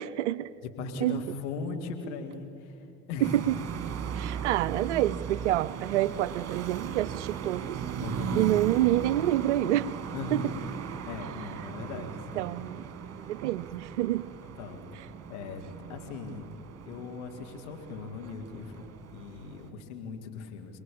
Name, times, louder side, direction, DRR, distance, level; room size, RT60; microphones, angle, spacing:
voice 1, 0.0-0.5 1.0-1.2 3.2-3.6 4.1-7.8 8.4-9.9 10.3-10.4 12.0-12.1 12.4-12.9 13.3-14.3, right 14 dB, 90° right, 19 dB, 0.5 m, -27 dB
voice 2, 0.6-3.3 8.0-8.5 10.1-10.6 11.0-12.5 14.6-14.8 15.3-15.6 15.9-16.5 16.9-20.8, left 4 dB, 80° left, 4 dB, 2.4 m, -39 dB
sound 1, 3.2-19.7, right 8 dB, 45° right, 2.3 m, -38 dB
27.5 x 19.5 x 8.6 m, 2.6 s
hypercardioid pair, 60°, 35 cm